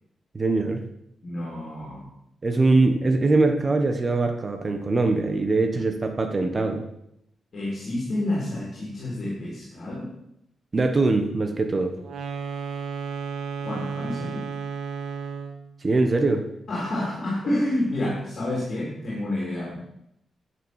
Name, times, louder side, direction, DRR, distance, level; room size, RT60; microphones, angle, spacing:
voice 1, 0.3-0.8 2.4-6.8 10.7-11.9 15.8-16.4, right 3 dB, 30° right, 5 dB, 1.3 m, -22 dB
voice 2, 1.2-2.1 7.5-10.1 13.6-14.5 16.7-19.8, left 1 dB, 45° left, -4 dB, 4.0 m, -29 dB
sound 1, 12.0-15.7, right 6 dB, 85° right, 1.6 m, -33 dB
10.5 x 9.3 x 6.4 m, 0.77 s
wide cardioid pair, 150°, 0 cm